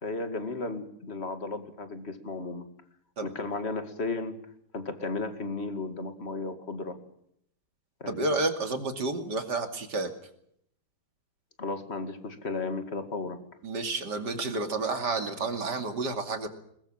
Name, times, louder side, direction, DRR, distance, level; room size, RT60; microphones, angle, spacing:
voice 1, 0.0-2.6 3.2-4.4 4.7-7.0 8.0-8.3 11.6-13.4, left 3 dB, 35° left, 8 dB, 2.5 m, -34 dB
voice 2, 8.1-10.1 13.6-16.5, right 3 dB, 60° right, 6 dB, 3.1 m, -30 dB
21.5 x 21.5 x 7.6 m, 0.72 s
omnidirectional pair, 2.0 m